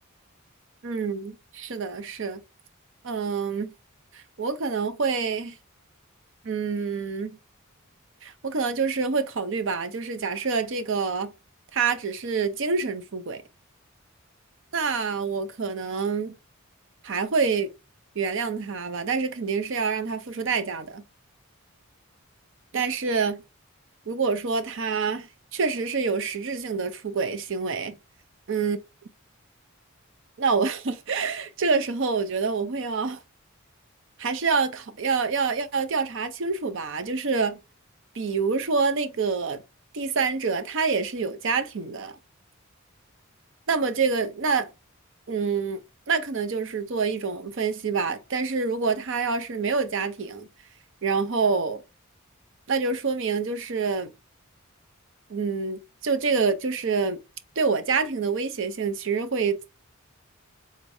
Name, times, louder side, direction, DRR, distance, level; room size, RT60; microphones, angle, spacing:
voice 1, 0.8-2.4 3.0-3.7 4.1-5.6 6.4-7.4 8.2-11.3 11.7-13.4 14.7-16.3 17.0-17.7 18.2-21.0 22.7-23.4 24.1-28.0 28.5-28.8 30.4-33.2 34.2-37.6 38.1-39.6 39.9-42.2 43.7-44.7 45.3-50.5 51.0-51.8 52.7-54.1 55.3-57.2 57.6-59.8, right 5 dB, 60° right, 0.6 m, -27 dB
3.8 x 2.7 x 4.6 m
head